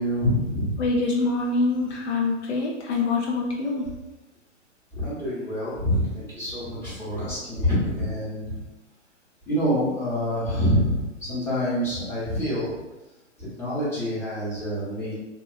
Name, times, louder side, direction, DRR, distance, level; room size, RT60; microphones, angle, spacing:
voice 1, 0.0-0.9 4.9-8.6 9.5-12.7 13.4-15.1, equal, 5° left, -11 dB, 0.8 m, -26 dB
voice 2, 0.8-3.9, left 3 dB, 65° left, -1 dB, 0.6 m, -25 dB
2.9 x 2.2 x 2.3 m, 1.1 s
hypercardioid pair, 135°, 38 cm